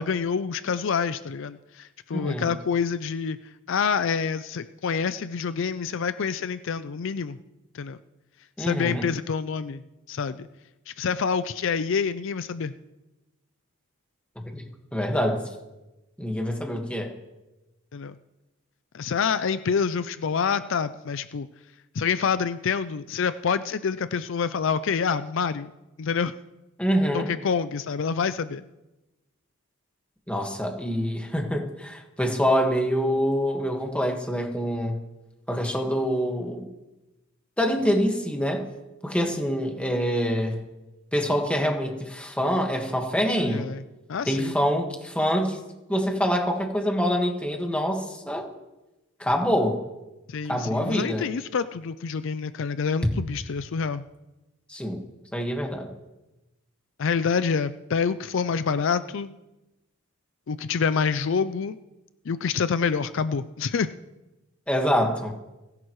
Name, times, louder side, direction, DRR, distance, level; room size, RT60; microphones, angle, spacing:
voice 1, 0.0-3.4 3.7-7.4 7.7-8.0 8.6-10.5 10.9-12.7 17.9-18.2 18.9-21.5 21.9-25.7 26.0-26.3 27.1-28.6 43.4-43.8 44.1-44.5 50.3-54.0 57.0-59.3 60.5-61.8 62.3-63.9, left 6 dB, 60° left, 13 dB, 0.4 m, -27 dB
voice 2, 2.1-2.5 8.6-9.1 14.4-14.6 14.9-15.4 16.2-17.1 26.8-27.3 30.3-35.0 35.5-36.7 37.6-38.7 39.0-40.6 41.1-43.7 44.3-45.6 45.9-48.5 49.2-49.8 50.5-51.3 54.7-55.0 55.3-55.9 64.7-65.3, equal, 5° left, 2 dB, 1.6 m, -25 dB
30.0 x 11.0 x 3.1 m, 1.0 s
head